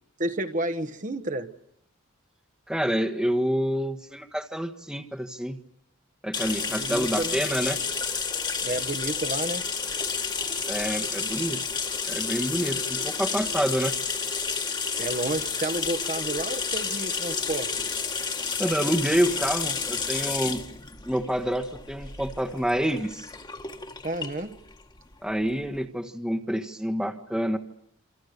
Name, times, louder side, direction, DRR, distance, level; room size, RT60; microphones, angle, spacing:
voice 1, 0.2-1.5 6.7-7.4 8.6-9.7 15.0-17.7 24.0-24.5, right 2 dB, 40° right, 8 dB, 1.4 m, -31 dB
voice 2, 2.7-5.6 6.2-7.8 10.7-11.6 12.1-14.0 18.6-20.6 21.0-23.3 25.2-27.6, equal, 5° right, 5 dB, 1.4 m, -27 dB
sound 1, 6.3-25.8, left 5 dB, 20° left, 1.7 m, -31 dB
28.5 x 26.5 x 6.7 m, 0.75 s
head